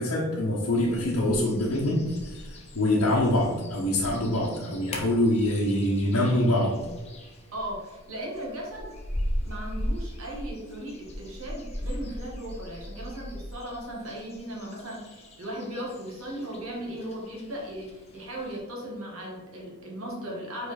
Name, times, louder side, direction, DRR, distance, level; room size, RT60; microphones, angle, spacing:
voice 1, 0.0-2.5 2.7-6.8, left 1 dB, 75° left, -5 dB, 1.0 m, -25 dB
sound 1, 0.7-18.6, equal, 30° left, 0.9 m, -39 dB
voice 2, 7.5-8.9 9.4-20.7, right 1 dB, 70° right, -3 dB, 1.7 m, -37 dB
5.4 x 4.6 x 4.1 m, 1.2 s
head